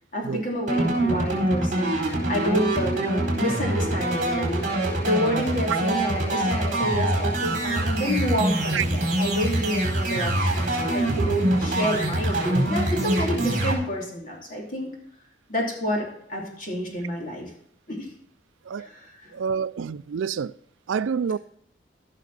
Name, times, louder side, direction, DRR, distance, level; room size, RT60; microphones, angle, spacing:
voice 1, 0.1-14.9 15.5-17.5 17.9-18.1 18.8-19.3, equal, 45° left, 2.9 m, -29 dB
sound 1, 0.7-13.8, right 1 dB, 40° right, 4.1 m, -24 dB
voice 2, 19.3-20.5 20.9-21.4, right 6 dB, 90° right, 0.4 m, -27 dB
15.0 x 6.0 x 4.1 m
head